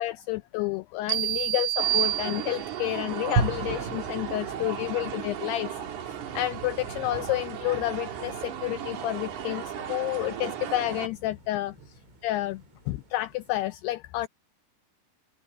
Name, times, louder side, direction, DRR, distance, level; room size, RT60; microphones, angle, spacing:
voice 1, 0.0-5.7 6.0-14.3, left 16 dB, 85° left, 2.3 m, -30 dB
sound 1, 1.1-2.9, right 14 dB, 70° right, 3.6 m, -28 dB
sound 2, 1.8-11.1, right 9 dB, 55° right, 2.7 m, -36 dB
sound 3, 3.4-13.6, right 4 dB, 85° right, 7.4 m, -37 dB
open air
omnidirectional pair, 5.3 m